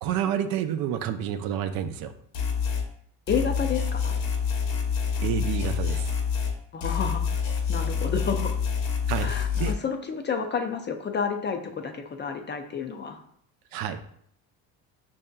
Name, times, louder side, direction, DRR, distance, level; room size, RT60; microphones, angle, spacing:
voice 1, 0.0-2.1 5.2-6.1 9.1-9.7 13.7-14.0, right 9 dB, 60° right, 8 dB, 0.5 m, -29 dB
sound 1, 2.3-2.9 3.3-6.6 6.8-9.7, left 6 dB, 55° left, 1.0 m, -27 dB
voice 2, 3.3-4.1 6.7-7.2 7.7-8.5 9.2-13.2, left 6 dB, 30° left, 5 dB, 0.5 m, -30 dB
5.4 x 2.7 x 2.2 m, 0.67 s
supercardioid pair, 85°, 39 cm